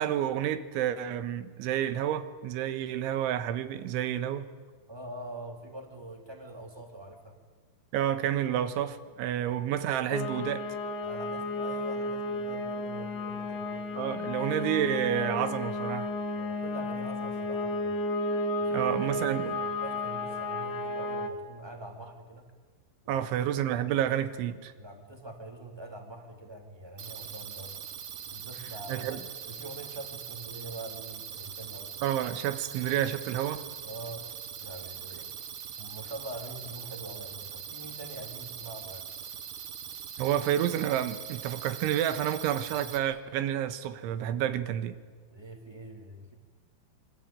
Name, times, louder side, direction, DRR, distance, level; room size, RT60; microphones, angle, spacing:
voice 1, 0.0-4.5 7.9-10.7 13.9-16.1 18.7-19.6 23.1-24.7 28.9-29.2 32.0-33.7 40.2-45.0, right 11 dB, 80° right, 3.7 m, -30 dB
voice 2, 4.9-7.3 11.0-13.9 16.3-18.0 18.6-22.5 23.0-23.4 24.8-27.8 28.3-31.9 33.8-34.3 34.6-35.5 35.8-39.1 45.3-46.3, right 1 dB, 5° right, 2.5 m, -44 dB
sound 1, 10.1-21.3, left 2 dB, 65° left, 3.6 m, -33 dB
sound 2, 27.0-43.0, right 8 dB, 60° right, 2.3 m, -42 dB
26.5 x 25.0 x 9.0 m
omnidirectional pair, 5.5 m